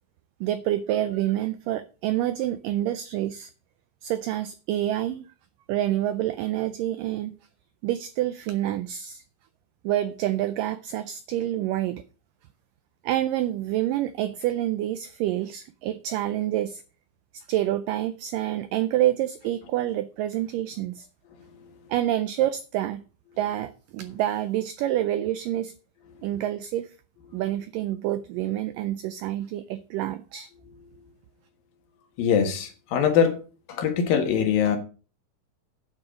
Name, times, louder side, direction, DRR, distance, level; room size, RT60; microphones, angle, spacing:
voice 1, 0.4-3.5 4.0-5.3 5.7-7.4 7.8-9.2 9.8-12.0 13.0-16.8 17.3-21.1 21.9-23.0 23.4-25.7 26.2-26.9 27.3-30.5, right 13 dB, 85° right, 1.9 m, -27 dB
voice 2, 32.2-33.4 33.7-34.8, left 7 dB, 70° left, 3.2 m, -22 dB
9.4 x 7.6 x 5.2 m
omnidirectional pair, 4.6 m